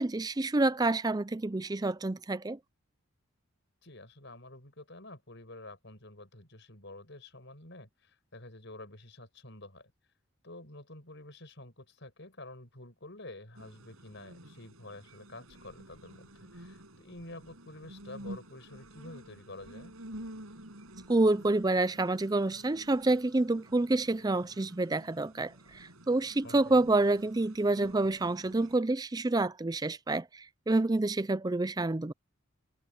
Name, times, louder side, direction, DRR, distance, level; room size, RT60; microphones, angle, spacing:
voice 1, 0.0-2.6 21.1-32.1, right 2 dB, 20° right, 0.4 m, -28 dB
voice 2, 3.8-9.9 10.4-20.0 26.4-26.9, left 2 dB, 55° left, 6.7 m, -49 dB
sound 1, 13.5-28.8, right 1 dB, 85° right, 7.1 m, -50 dB
head